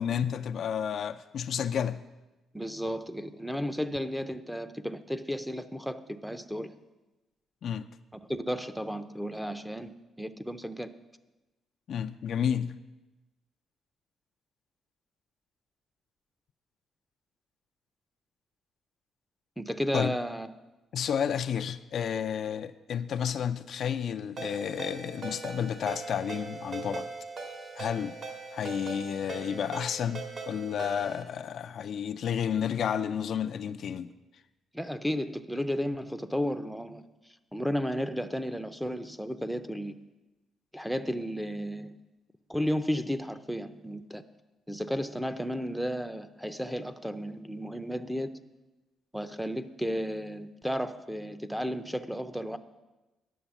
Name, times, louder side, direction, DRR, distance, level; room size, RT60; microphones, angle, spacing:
voice 1, 0.0-2.0 7.6-7.9 11.9-12.8 19.9-20.1 20.9-27.1 27.8-28.2 28.5-34.1, left 8 dB, 65° left, 0.4 m, -31 dB
voice 2, 2.5-6.7 8.3-9.9 10.2-10.9 19.6-20.5 34.7-37.0 37.5-40.0 40.7-41.9 42.5-44.2 44.7-48.4 49.1-52.6, equal, ahead, 0.6 m, -33 dB
Ringtone, 24.4-31.2, right 4 dB, 55° right, 2.2 m, -40 dB
10.0 x 7.1 x 7.0 m
cardioid pair, 90°, 0 cm